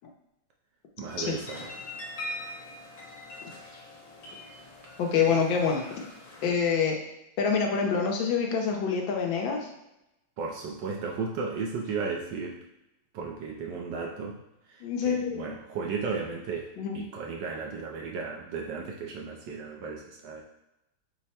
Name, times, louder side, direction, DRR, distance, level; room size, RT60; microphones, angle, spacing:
voice 1, 1.0-1.7 10.4-12.6 13.1-14.4 14.7-20.4, right 5 dB, 70° right, 0 dB, 1.1 m, -35 dB
sound 1, 1.1-6.5, left 1 dB, 55° left, 1.7 m, -42 dB
voice 2, 5.0-5.9 6.4-7.0 7.4-9.7 14.8-15.5 16.8-17.0, left 6 dB, 75° left, 1 dB, 1.4 m, -26 dB
5.5 x 2.1 x 4.2 m, 0.89 s
omnidirectional pair, 2.2 m